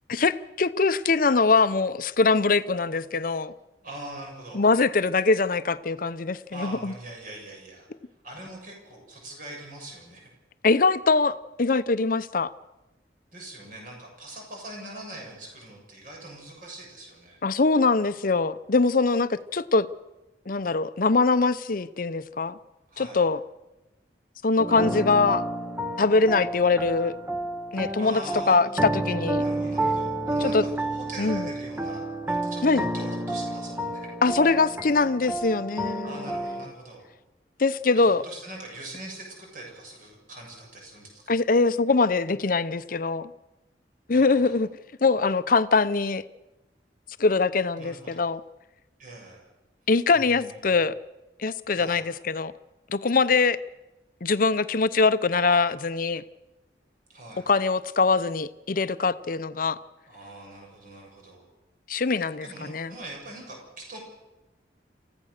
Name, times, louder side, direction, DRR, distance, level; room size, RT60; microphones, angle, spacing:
voice 1, 0.1-3.5 4.5-6.9 10.6-12.5 17.4-19.9 20.5-22.6 23.0-23.4 24.4-25.5 26.0-27.2 27.7-28.2 28.5-29.4 30.4-30.6 31.2-31.5 32.6-32.8 34.2-36.2 37.6-38.2 41.3-43.3 44.1-44.7 45.0-46.2 47.2-48.4 49.9-51.0 51.4-52.5 52.9-53.6 54.2-56.2 57.5-59.8 61.9-62.9, left 4 dB, 50° left, 14 dB, 0.7 m, -23 dB
voice 2, 3.8-4.6 6.5-7.9 8.2-10.3 13.3-17.4 22.9-23.2 28.0-28.6 29.4-34.1 36.0-37.1 37.9-41.2 44.1-44.6 47.8-48.2 49.0-49.5 50.1-50.8 51.7-52.1 57.1-57.5 60.1-61.5 62.1-64.0, right 1 dB, 50° right, 0 dB, 6.8 m, -42 dB
sound 1, 24.6-36.6, right 1 dB, 10° right, 1.0 m, -30 dB
28.5 x 15.0 x 6.6 m, 1.0 s
head